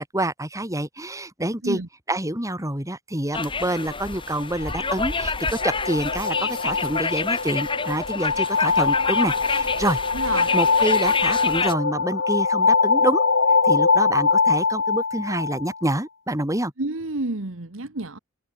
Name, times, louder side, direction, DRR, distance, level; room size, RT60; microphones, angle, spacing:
voice 1, 0.0-1.8 2.1-10.0 10.3-13.2 13.6-16.7, right 1 dB, 15° right, 5.5 m, -27 dB
sound 1, 3.3-11.7, left 4 dB, 25° left, 4.4 m, -28 dB
sound 2, 4.3-16.0, left 4 dB, 65° left, 2.3 m, -23 dB
voice 2, 10.1-10.5 16.8-18.2, right 2 dB, 75° right, 1.6 m, -29 dB
head